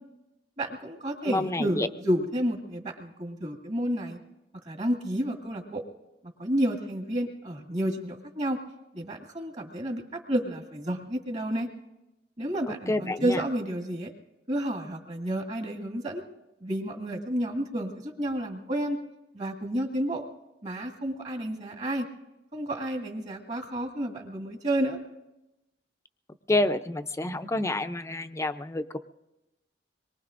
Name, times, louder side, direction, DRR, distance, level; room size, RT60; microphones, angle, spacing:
voice 1, 0.6-4.2 4.6-5.8 6.4-8.6 8.9-11.7 12.4-14.1 14.5-16.2 16.6-19.0 19.3-20.2 20.6-22.1 22.5-25.0, right 1 dB, 45° right, 2 dB, 1.8 m, -30 dB
voice 2, 1.3-1.9 12.9-13.4 26.5-29.0, left 2 dB, 15° left, 9 dB, 0.5 m, -28 dB
25.5 x 22.5 x 2.5 m, 0.95 s
head